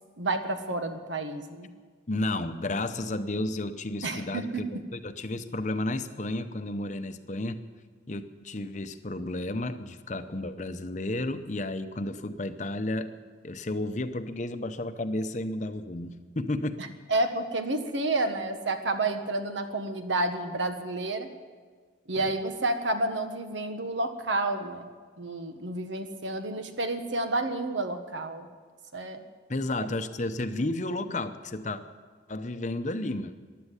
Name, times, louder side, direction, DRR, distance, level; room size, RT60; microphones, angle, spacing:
voice 1, 0.2-1.7 4.0-4.6 16.8-21.3 22.1-24.9 25.2-28.5 28.9-29.2, right 2 dB, 80° right, 7 dB, 1.4 m, -30 dB
voice 2, 2.1-7.6 8.1-13.1 13.4-16.8 22.2-22.3 29.5-31.8 32.3-33.3, left 2 dB, 40° left, 10 dB, 0.8 m, -32 dB
15.5 x 11.0 x 8.2 m, 1.5 s
head